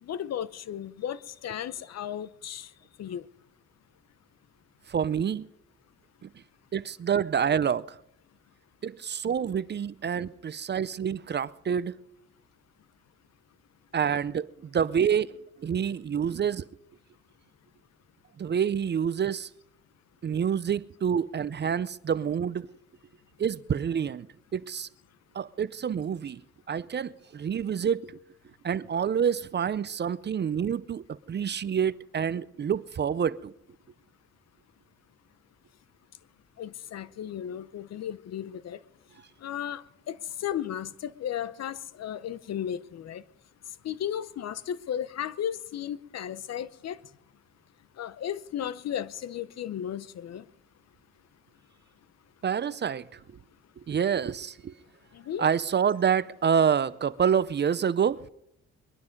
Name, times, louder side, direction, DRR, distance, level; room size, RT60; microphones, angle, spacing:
voice 1, 0.0-2.7 3.0-3.2 36.6-38.8 39.4-43.2 43.8-47.0 48.0-50.4 55.1-55.5, left 10 dB, 60° left, 0.8 m, -35 dB
voice 2, 4.9-5.5 6.7-8.0 8.8-11.9 13.9-15.3 15.6-16.7 18.4-19.5 20.2-22.7 23.4-24.3 24.5-24.9 25.3-26.4 26.7-28.1 28.6-33.5 52.4-53.0 53.8-54.7 55.4-58.2, right 7 dB, 35° right, 0.5 m, -27 dB
21.5 x 12.0 x 5.3 m
cardioid pair, 90°, 30 cm